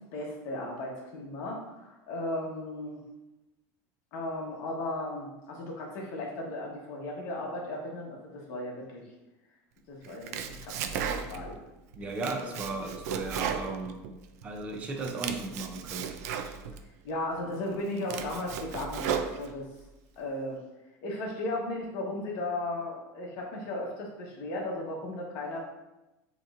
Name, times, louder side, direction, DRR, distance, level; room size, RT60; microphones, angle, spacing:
voice 1, 0.1-3.0 4.1-9.0 9.9-11.6 12.2-12.6 17.0-19.7 20.2-20.6 21.0-25.6, left 1 dB, 45° left, -1 dB, 1.1 m, -36 dB
Domestic sounds home sounds, 10.0-11.6 11.9-14.5 14.8-16.8 17.4-17.5 17.9-19.8, right 7 dB, 90° right, 0.4 m, -35 dB
voice 2, 12.0-14.0 14.4-16.1, right 3 dB, 15° right, 3 dB, 0.5 m, -36 dB
6.7 x 3.0 x 2.5 m, 0.98 s
cardioid pair, 180°, 8 cm